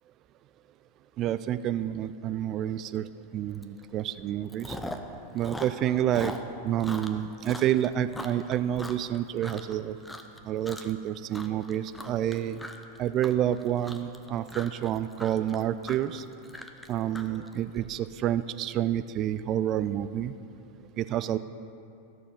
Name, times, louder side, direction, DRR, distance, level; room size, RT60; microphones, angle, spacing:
voice 1, 1.2-4.8 5.3-6.3 6.6-10.0 10.4-12.6 13.0-16.2 16.9-20.3 21.0-21.4, right 11 dB, 35° right, 13 dB, 0.4 m, -29 dB
Chewing mastication, 3.6-3.8 4.1-5.1 5.4-9.7 10.0-10.4 10.6-11.0 11.3-17.8, left 1 dB, 5° left, 0.7 m, -40 dB
14.0 x 6.8 x 5.2 m, 2.6 s
figure-of-eight pair, 90°, 0 cm